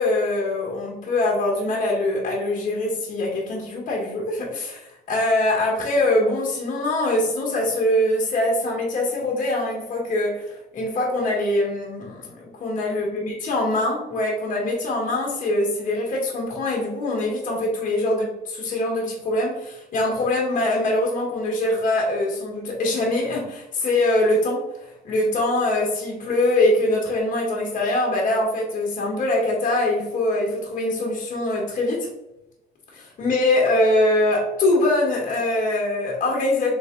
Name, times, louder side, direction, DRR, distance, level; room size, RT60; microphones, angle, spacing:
voice 1, 0.0-4.8 5.1-24.6 25.0-32.1 32.9-36.8, left 1 dB, 50° left, -1 dB, 1.6 m, -23 dB
4.0 x 3.5 x 3.7 m, 0.87 s
cardioid pair, 110°, 17 cm